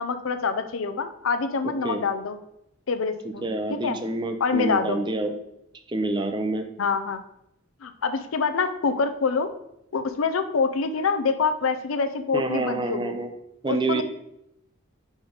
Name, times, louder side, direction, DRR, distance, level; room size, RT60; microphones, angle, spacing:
voice 1, 0.0-2.4 2.9-4.0 4.4-5.0 6.8-7.2 7.8-9.5 9.9-13.1 13.7-14.0, left 4 dB, 80° left, 9 dB, 0.5 m, -26 dB
voice 2, 1.6-2.0 3.4-5.3 5.9-6.7 12.3-13.3 13.6-14.0, right 2 dB, 20° right, 7 dB, 0.5 m, -27 dB
4.9 x 3.9 x 5.0 m, 0.81 s
head